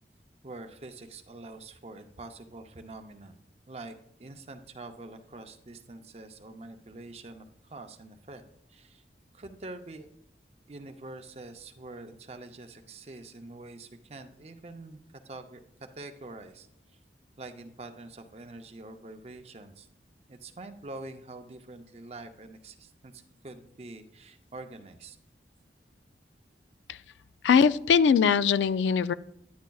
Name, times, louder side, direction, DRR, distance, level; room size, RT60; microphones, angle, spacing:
voice 1, 0.4-3.3 3.7-3.9 4.2-7.4 7.7-8.4 8.7-9.0 9.3-10.1 10.7-15.6 15.9-16.7 17.4-19.9 20.3-23.1 23.4-25.2, right 2 dB, 35° right, 7 dB, 0.6 m, -45 dB
voice 2, 27.4-29.1, left 6 dB, 85° left, 15 dB, 0.3 m, -21 dB
10.5 x 9.5 x 2.3 m, 0.73 s
head